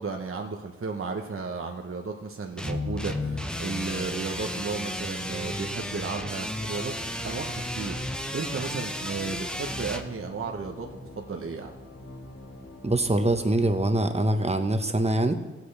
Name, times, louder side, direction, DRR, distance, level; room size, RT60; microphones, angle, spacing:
voice 1, 0.0-6.9 7.2-8.0 8.3-11.7, right 4 dB, 45° right, 2 dB, 1.0 m, -34 dB
sound 1, 2.6-10.0, left 1 dB, 5° left, 1.0 m, -33 dB
sound 2, 2.7-13.9, left 1 dB, 55° left, 3.4 m, -44 dB
voice 2, 12.8-15.3, right 1 dB, 20° right, 6 dB, 1.2 m, -24 dB
16.0 x 8.1 x 3.4 m, 1.1 s
cardioid pair, 45°, 29 cm